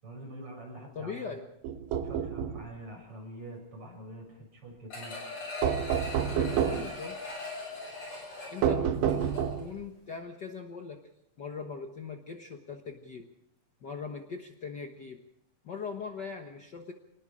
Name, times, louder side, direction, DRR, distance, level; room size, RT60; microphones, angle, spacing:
voice 1, 0.0-1.3 2.0-5.2, right 1 dB, 40° right, 0 dB, 8.2 m, -45 dB
voice 2, 0.9-1.5 6.3-7.2 8.5-9.3 9.5-11.0 11.4-13.3 13.8-15.2 15.6-16.9, left 5 dB, 85° left, 4 dB, 0.9 m, -40 dB
sound 1, 1.6-2.6 5.6-7.0 8.6-9.8, right 8 dB, 70° right, 2.8 m, -28 dB
sound 2, 4.9-9.7 10.1-10.2, left 3 dB, 40° left, 7.6 m, -41 dB
26.5 x 20.0 x 5.0 m, 0.79 s
omnidirectional pair, 4.1 m